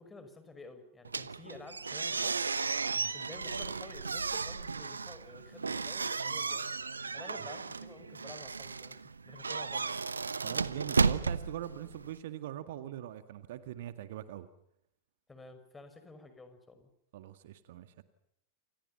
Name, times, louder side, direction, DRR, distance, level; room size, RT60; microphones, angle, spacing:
voice 1, 0.0-2.4 3.1-6.8 7.1-9.0 9.2-10.0 15.3-16.9, left 3 dB, 10° left, 9 dB, 5.8 m, -51 dB
sound 1, 1.0-12.2, right 4 dB, 75° right, 1.0 m, -34 dB
voice 2, 10.4-14.5 17.1-18.0, right 12 dB, 55° right, 11 dB, 1.9 m, -42 dB
29.5 x 28.0 x 5.7 m, 0.75 s
figure-of-eight pair, 90°, 0 cm